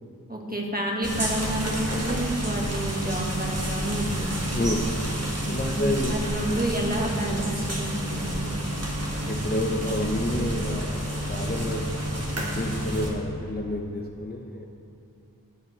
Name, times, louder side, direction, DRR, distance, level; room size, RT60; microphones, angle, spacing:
voice 1, 0.3-4.5 5.6-8.4, right 1 dB, 25° right, -1 dB, 1.6 m, -30 dB
sound 1, 1.0-13.1, right 1 dB, 40° right, 1.5 m, -29 dB
voice 2, 4.5-4.9 5.5-6.1 8.4-8.6 9.3-11.8 12.3-14.7, left 1 dB, 25° left, 0 dB, 0.8 m, -29 dB
16.5 x 7.2 x 3.2 m, 2.7 s
wide cardioid pair, 45°, 37 cm